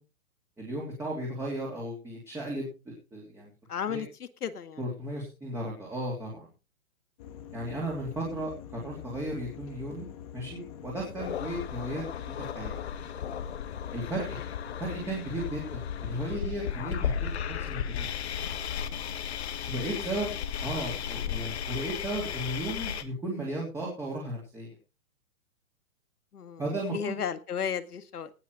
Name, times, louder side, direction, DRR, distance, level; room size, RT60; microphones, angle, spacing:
voice 1, 0.6-3.5 3.9-4.0 4.8-6.5 7.5-10.1 10.3-12.7 13.9-14.3 14.8-18.1 19.7-20.3 20.6-24.7 26.6-27.2, right 1 dB, 5° right, -3 dB, 3.2 m, -35 dB
voice 2, 3.7-4.8 7.7-7.9 14.3-14.4 19.9-20.4 26.3-26.6 26.9-28.3, left 7 dB, 85° left, 11 dB, 2.0 m, -35 dB
sound 1, 7.2-21.7, left 10 dB, 25° left, 1.4 m, -45 dB
sound 2, 11.2-23.0, left 8 dB, 45° left, 1.6 m, -35 dB
18.5 x 6.8 x 4.9 m, 0.32 s
hypercardioid pair, 170°, 44 cm